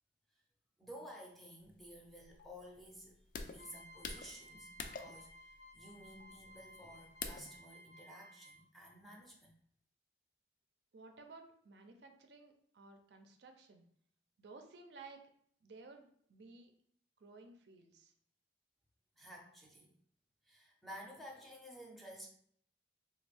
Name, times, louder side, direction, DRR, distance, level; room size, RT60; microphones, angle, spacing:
voice 1, 0.8-9.5 19.2-19.9 20.4-22.3, equal, ahead, -2 dB, 0.5 m, -53 dB
sound 1, 1.6-7.6, left 5 dB, 50° left, 0.3 m, -48 dB
sound 2, 3.6-8.8, equal, 65° left, 0.7 m, -58 dB
voice 2, 10.9-13.9 14.4-15.2 15.6-16.7 17.2-18.1, right 3 dB, 70° right, 5 dB, 0.5 m, -56 dB
3.3 x 2.3 x 3.3 m, 0.64 s
head